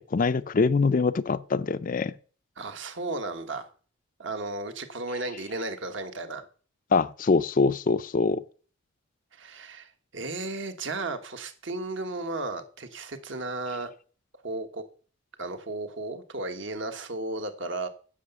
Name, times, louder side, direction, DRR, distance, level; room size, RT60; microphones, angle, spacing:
voice 1, 0.0-2.1 6.9-8.4, left 4 dB, 40° left, 0.4 m, -24 dB
voice 2, 2.6-3.7 4.2-6.4 9.3-13.9 14.4-14.8 15.4-17.9, right 2 dB, 60° right, 1.3 m, -34 dB
9.9 x 6.8 x 6.8 m
head